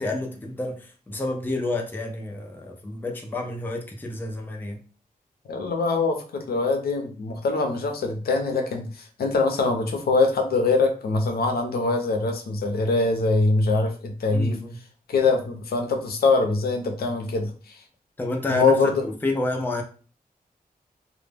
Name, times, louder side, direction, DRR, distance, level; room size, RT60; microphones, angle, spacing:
voice 1, 0.0-4.8 14.3-14.8 18.2-19.8, left 2 dB, 10° left, 0.3 m, -29 dB
voice 2, 5.5-14.6 15.1-17.8 18.5-19.0, left 3 dB, 85° left, 0.5 m, -23 dB
2.1 x 2.0 x 3.2 m
wide cardioid pair, 170°, 16 cm